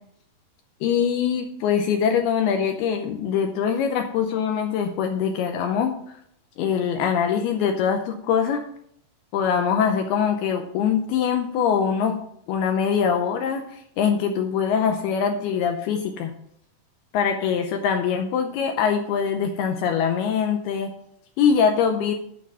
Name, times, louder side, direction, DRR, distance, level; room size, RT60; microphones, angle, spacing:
voice 1, 0.8-6.2 6.6-8.6 9.3-12.2 12.5-16.3 17.1-20.9 21.4-22.1, left 7 dB, 80° left, 5 dB, 2.4 m, -23 dB
11.5 x 4.6 x 6.2 m, 0.70 s
omnidirectional pair, 5.2 m